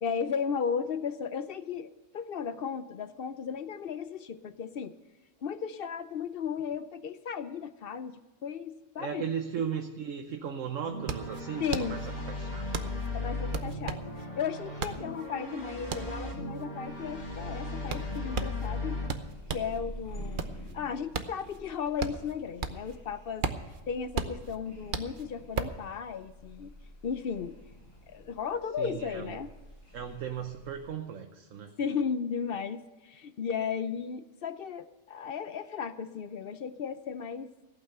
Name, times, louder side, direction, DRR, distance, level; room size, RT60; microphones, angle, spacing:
voice 1, 0.0-5.0 5.4-9.3 11.6-12.0 13.1-19.0 19.5-20.4 20.7-23.5 23.9-26.7 27.0-27.6 28.1-29.5 31.8-37.5, left 6 dB, 55° left, 13 dB, 0.8 m, -35 dB
voice 2, 9.0-12.0 12.3-12.8 28.8-29.4 29.9-31.7, right 7 dB, 70° right, 5 dB, 1.2 m, -36 dB
sound 1, 10.8-19.1, left 2 dB, 30° left, 3.1 m, -37 dB
sound 2, 10.9-19.8 20.2-23.0 23.2-25.8, right 5 dB, 45° right, 0.9 m, -36 dB
sound 3, 16.8-30.9, equal, 80° left, 4.8 m, -48 dB
15.0 x 8.8 x 6.6 m, 1.2 s
omnidirectional pair, 1.4 m